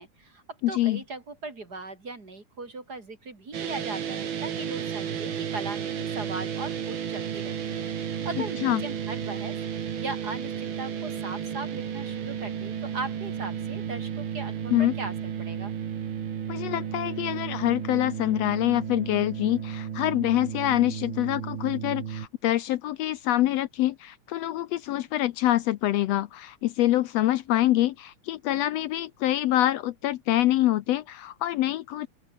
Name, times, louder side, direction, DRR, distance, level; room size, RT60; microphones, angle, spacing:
voice 1, 0.0-15.7, right 3 dB, 30° right, 3.9 m, -39 dB
voice 2, 0.6-1.0 8.6-8.8 14.7-14.9 16.5-32.1, left 14 dB, 75° left, 1.6 m, -25 dB
sound 1, 3.5-22.3, right 8 dB, 45° right, 2.0 m, -33 dB
open air
omnidirectional pair, 3.5 m